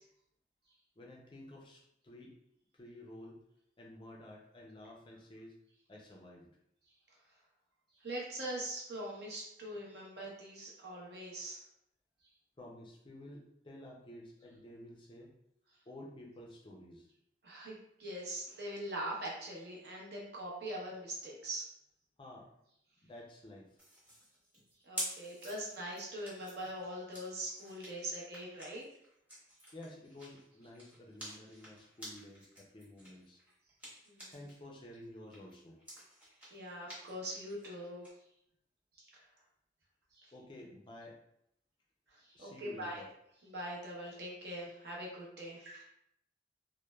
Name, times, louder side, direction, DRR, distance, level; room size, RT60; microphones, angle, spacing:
voice 1, 1.0-2.3 2.7-3.4 3.8-5.6 5.9-6.5 12.6-15.3 15.9-17.1 22.2-22.5 23.0-23.8 29.7-33.4 34.3-35.8 40.3-41.2 42.3-43.1, left 1 dB, 30° left, -1 dB, 0.4 m, -52 dB
voice 2, 8.0-11.6 17.4-21.7 24.8-28.8 34.1-34.3 36.5-38.1 40.1-40.3 42.1-43.0 43.4-45.8, right 1 dB, 65° right, -3 dB, 0.8 m, -42 dB
sound 1, 23.8-34.6 34.9-38.1, equal, 10° right, 0.9 m, -49 dB
3.1 x 2.1 x 2.2 m, 0.76 s
head